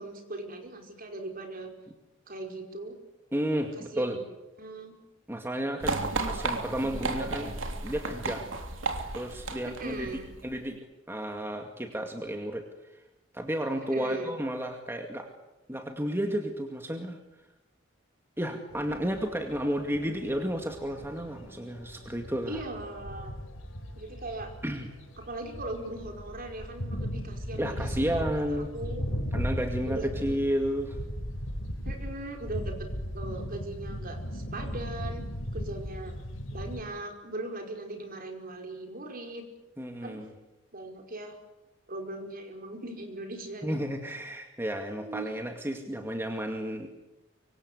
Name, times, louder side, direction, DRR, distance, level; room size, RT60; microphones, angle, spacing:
voice 1, 0.0-1.7 2.3-2.9 3.9-4.2 4.6-4.9 6.2-6.5 9.8-10.3 13.9-14.3 22.5-23.4 23.9-24.5 25.2-29.1 29.8-30.4 31.8-32.9 33.1-35.2 35.5-36.1 36.5-39.5 40.0-40.2 40.7-41.4 41.9-43.8 45.0-45.3, right 2 dB, 50° right, 4 dB, 5.0 m, -39 dB
voice 2, 3.3-4.2 5.3-7.5 7.8-8.5 9.1-10.1 10.4-12.7 13.3-15.3 15.7-17.2 18.4-22.6 24.6-24.9 27.6-28.7 29.3-31.0 39.8-40.3 43.6-46.9, equal, 10° right, 4 dB, 2.2 m, -32 dB
sound 1, 5.8-10.5, right 3 dB, 80° right, 3.1 m, -33 dB
sound 2, 18.7-36.8, equal, 85° left, 4.7 m, -37 dB
25.0 x 25.0 x 8.3 m, 1.0 s
head